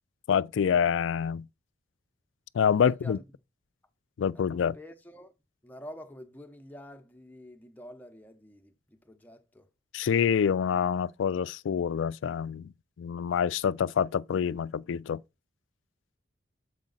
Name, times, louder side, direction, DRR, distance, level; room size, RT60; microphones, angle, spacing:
voice 1, 0.3-1.5 2.5-3.2 4.2-4.8 9.9-12.7 13.0-15.2, left 7 dB, 85° left, 0.3 m, -26 dB
voice 2, 2.8-3.2 4.3-5.3 5.6-9.7, equal, 10° left, 0.7 m, -48 dB
7.4 x 4.8 x 3.9 m
head